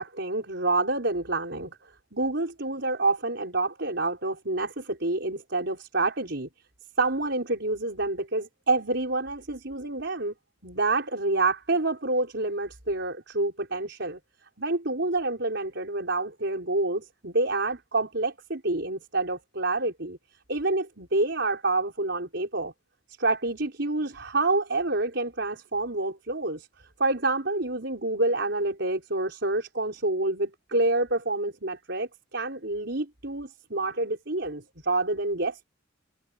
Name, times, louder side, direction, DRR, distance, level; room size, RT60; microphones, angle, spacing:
voice 1, 0.0-1.8 2.1-6.5 7.0-10.3 10.6-14.2 14.6-20.2 20.5-22.7 23.2-26.7 27.0-35.7, right 2 dB, 60° right, 5.3 m, -28 dB
head